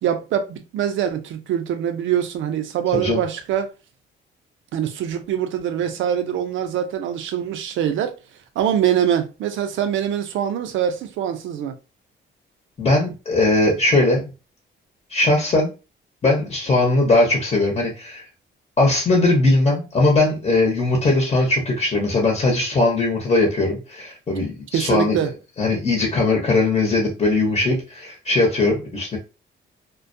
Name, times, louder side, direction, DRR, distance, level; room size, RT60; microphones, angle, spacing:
voice 1, 0.0-3.7 4.7-8.2 8.6-11.7 24.7-25.3, right 9 dB, 75° right, 0.5 m, -23 dB
voice 2, 12.8-14.3 15.1-15.7 16.2-18.2 18.8-25.2 25.6-29.2, left 2 dB, 30° left, 0.9 m, -19 dB
2.2 x 2.2 x 2.6 m
cardioid pair, 90°, 20 cm